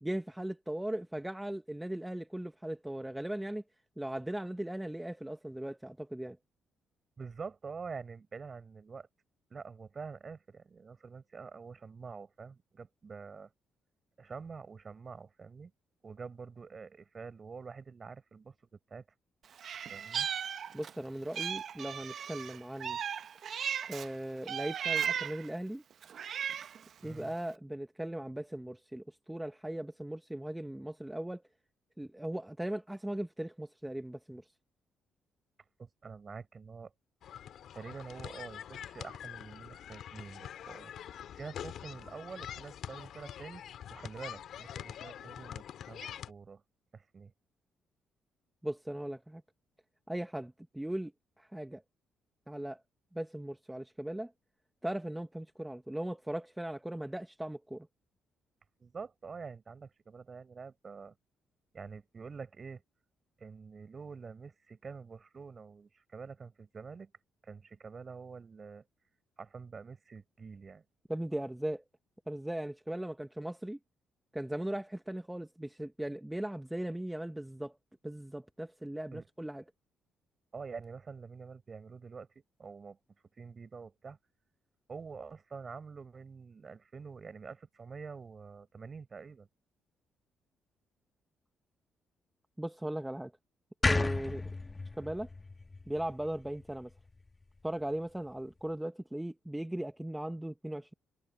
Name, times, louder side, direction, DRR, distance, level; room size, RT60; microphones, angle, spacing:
voice 1, 0.0-3.6 4.0-6.4 20.7-23.0 23.9-25.8 27.0-31.4 32.0-34.4 48.6-49.4 50.1-51.1 51.4-51.8 52.5-52.8 53.1-54.3 54.8-57.9 71.1-71.8 72.3-73.8 74.3-77.7 78.0-79.6 92.6-93.3 93.8-94.4 95.0-95.3 95.9-96.9 97.6-100.9, right 1 dB, 5° right, 1.1 m, -38 dB
voice 2, 7.2-9.1 9.5-13.5 14.2-15.7 16.0-19.0 19.9-20.3 27.0-27.3 35.8-36.9 37.7-46.6 46.9-47.3 58.8-61.1 61.7-62.8 63.4-67.1 67.4-68.8 69.4-70.8 79.1-79.3 80.5-82.3 82.6-83.0 83.4-84.2 84.9-89.5, right 5 dB, 35° right, 5.4 m, -47 dB
Meow, 19.6-21.0 21.3-24.1 24.5-25.5 26.0-26.8, right 8 dB, 60° right, 0.7 m, -36 dB
sound 1, 37.2-46.3, left 10 dB, 70° left, 2.7 m, -45 dB
sound 2, 93.8-97.0, left 3 dB, 25° left, 1.2 m, -33 dB
cardioid pair, 90°, 0 cm